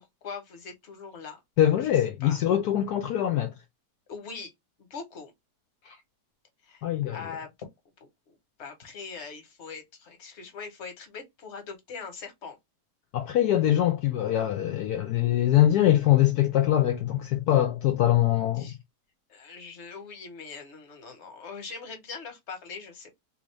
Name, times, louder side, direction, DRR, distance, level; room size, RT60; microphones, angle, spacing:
voice 1, 0.0-1.4 1.8-1.9 2.2-2.4 4.1-4.5 4.8-5.3 6.6-6.8 7.1-7.7 8.3-8.4 8.6-12.6 18.6-18.8 19.3-23.2, left 5 dB, 45° left, 1.3 m, -41 dB
voice 2, 1.6-3.5 5.9-6.0 6.8-7.2 13.1-18.7, left 12 dB, 75° left, 1.1 m, -23 dB
3.5 x 2.5 x 3.1 m
omnidirectional pair, 1.8 m